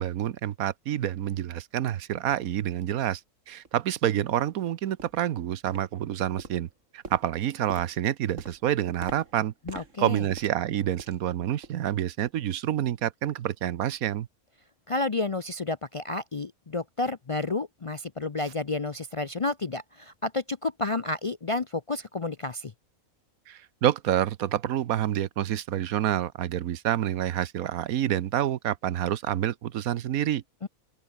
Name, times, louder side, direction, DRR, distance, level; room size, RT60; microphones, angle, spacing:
voice 1, 0.0-3.2 3.5-9.5 10.0-14.3 23.5-30.4, right 11 dB, 80° right, 1.3 m, -28 dB
sound 1, 3.6-3.8 4.3-4.5 5.0-5.3 5.7-6.1 6.4-11.3 11.6-11.9 12.3-12.4 13.0-13.1, right 4 dB, 60° right, 3.0 m, -45 dB
voice 2, 9.7-10.2 14.9-22.7 30.6-30.7, left 3 dB, 40° left, 0.4 m, -31 dB
open air
omnidirectional pair, 1.5 m